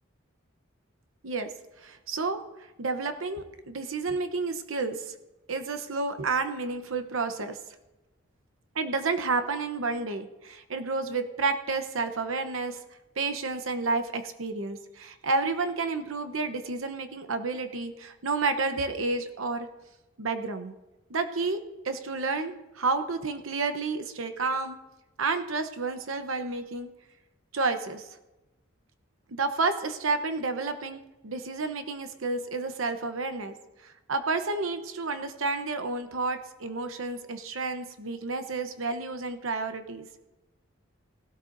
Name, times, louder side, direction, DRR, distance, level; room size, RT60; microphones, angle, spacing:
voice 1, 1.8-2.4 2.8-5.1 5.5-7.6 8.7-12.8 13.2-19.7 20.2-20.7 21.1-24.8 25.2-26.9 27.5-28.1 29.3-33.5 33.8-40.2, right 3 dB, 90° right, 8 dB, 0.9 m, -30 dB
20.0 x 12.5 x 2.6 m, 1.0 s
head